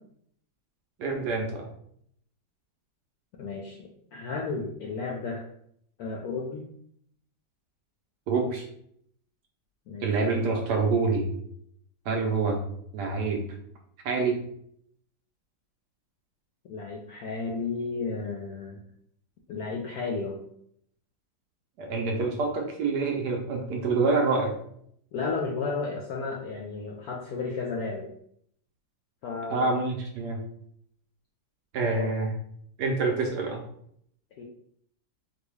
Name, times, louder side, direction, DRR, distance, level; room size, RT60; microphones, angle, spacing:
voice 1, 1.0-1.7 8.3-8.7 10.0-11.3 12.1-12.6 12.9-13.4 14.0-14.4 21.8-24.6 29.5-30.4 31.7-32.3 32.8-33.6, right 3 dB, 70° right, 2 dB, 1.1 m, -26 dB
voice 2, 3.4-5.4 6.0-6.6 9.9-10.1 16.7-18.8 19.5-20.4 25.1-28.1 29.2-29.7 32.0-32.1 34.4-34.5, left 4 dB, 75° left, -1 dB, 0.8 m, -33 dB
3.9 x 2.3 x 3.1 m, 0.67 s
omnidirectional pair, 2.0 m